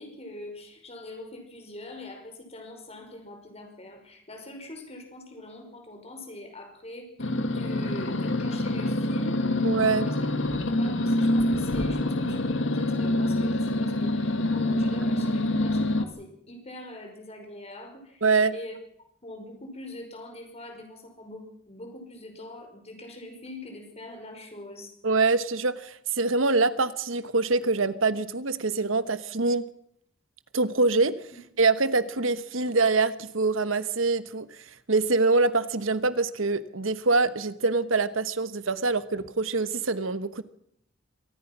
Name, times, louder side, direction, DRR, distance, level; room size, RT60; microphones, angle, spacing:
voice 1, 0.0-10.2 10.6-18.2 18.5-18.7 19.2-24.9, left 1 dB, 30° left, 4 dB, 5.4 m, -43 dB
sound 1, 7.2-16.0, left 1 dB, 65° left, 1.8 m, -26 dB
voice 2, 9.6-10.1 15.2-15.3 18.2-18.5 25.0-29.6 30.5-31.2 31.6-40.4, right 3 dB, 75° right, 13 dB, 1.2 m, -25 dB
24.5 x 18.5 x 6.1 m, 0.71 s
head